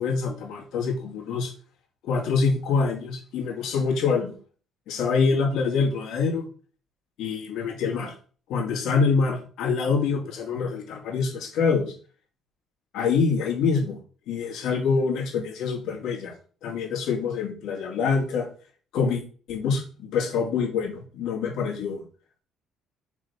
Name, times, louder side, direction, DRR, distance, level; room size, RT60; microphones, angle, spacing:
voice 1, 0.0-1.5 2.0-4.3 4.9-6.5 7.2-8.1 8.5-11.9 12.9-14.0 14.3-16.3 16.6-18.5 18.9-19.2 19.5-22.0, left 5 dB, 75° left, 0 dB, 3.0 m, -25 dB
6.1 x 4.1 x 5.8 m, 0.40 s
cardioid pair, 115°, 0 cm